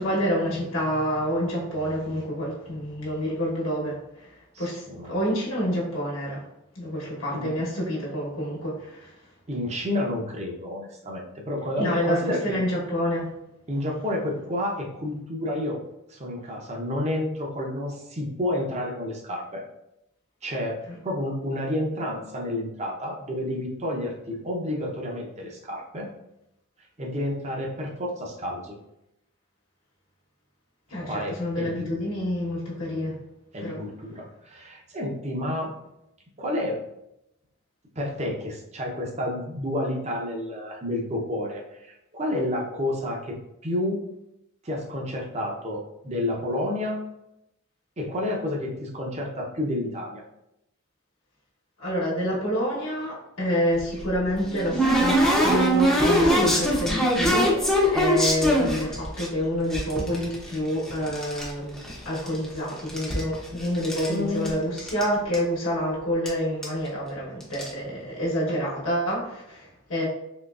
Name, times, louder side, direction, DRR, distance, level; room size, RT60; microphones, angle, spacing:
voice 1, 0.0-6.4 6.7-9.1 11.8-13.3 20.9-21.0 30.9-33.2 33.6-33.8 51.8-57.6 57.9-70.1, equal, 65° left, -5 dB, 1.1 m, -28 dB
voice 2, 4.5-5.1 7.3-7.5 9.5-12.6 13.7-15.8 16.1-19.6 20.4-20.8 21.0-26.1 27.0-28.7 30.9-32.0 33.5-35.7 36.4-36.7 38.0-43.4 43.6-44.0 44.6-47.0 48.0-50.2 64.1-64.5, left 1 dB, 30° right, -1 dB, 0.7 m, -30 dB
sound 1, 53.8-59.3 59.7-61.5 61.8-62.5 62.8-64.1 64.4-64.5 64.8-65.0 65.3-65.4 66.3-66.4 66.6-66.9 67.4-67.7, equal, 5° left, 0.6 m, -22 dB
3.8 x 3.1 x 2.3 m, 0.86 s
head